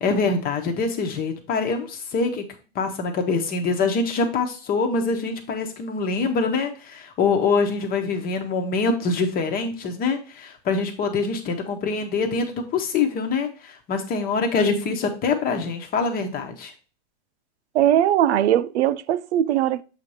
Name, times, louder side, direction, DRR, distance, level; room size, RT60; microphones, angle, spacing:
voice 1, 0.0-2.4 2.7-16.7, left 4 dB, 25° left, 1.1 m, -24 dB
voice 2, 17.7-19.8, right 11 dB, 85° right, 0.5 m, -20 dB
7.4 x 2.9 x 4.8 m
supercardioid pair, 140°, 33 cm